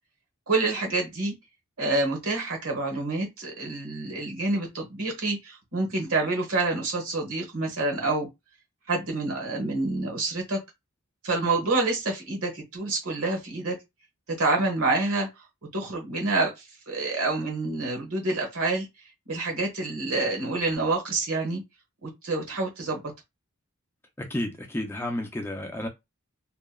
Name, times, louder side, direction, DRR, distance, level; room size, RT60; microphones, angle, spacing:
voice 1, 0.5-1.3 1.8-8.3 8.9-10.6 11.2-13.8 14.3-15.3 15.7-18.9 19.3-21.6 22.0-23.0, right 3 dB, 80° right, 1.2 m, -27 dB
voice 2, 24.2-25.9, left 1 dB, 10° left, 0.4 m, -31 dB
2.8 x 2.2 x 2.3 m
head